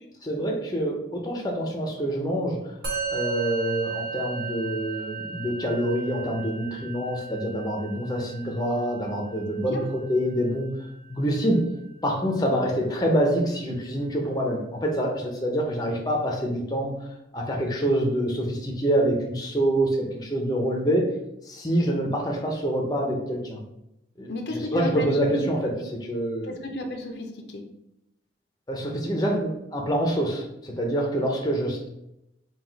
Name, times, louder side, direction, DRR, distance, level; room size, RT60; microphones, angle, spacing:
voice 1, 0.2-2.7 3.1-10.7 11.1-11.6 12.0-17.0 17.3-21.1 21.4-23.6 24.2-26.6 28.7-31.9, equal, 20° left, 0 dB, 0.6 m, -26 dB
Musical instrument, 2.8-12.4, right 6 dB, 55° right, 1.2 m, -36 dB
voice 2, 9.6-9.9 24.3-25.4 25.8-25.9 26.5-27.6, left 2 dB, 75° left, 4 dB, 0.6 m, -33 dB
3.9 x 2.3 x 4.5 m, 0.85 s
head